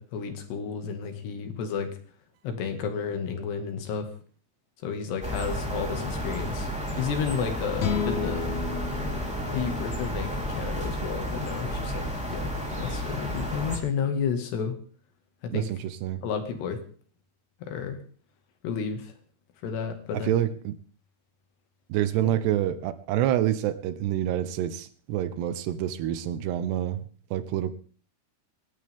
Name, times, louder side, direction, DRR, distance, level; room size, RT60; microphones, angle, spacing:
voice 1, 0.0-1.9 2.4-4.1 4.8-6.7 7.0-8.5 9.5-14.7 15.4-15.7 16.2-16.8 17.6-18.0 18.6-19.1 19.6-20.4 22.2-22.3, left 6 dB, 85° left, 6 dB, 4.2 m, -32 dB
sound 1, 5.2-13.8, equal, ahead, 3.3 m, -32 dB
sound 2, 7.8-11.1, left 6 dB, 55° left, 2.2 m, -33 dB
voice 2, 15.5-16.2 20.1-20.8 21.9-27.7, right 12 dB, 90° right, 12 dB, 3.2 m, -27 dB
26.5 x 12.0 x 3.7 m, 0.43 s
omnidirectional pair, 4.7 m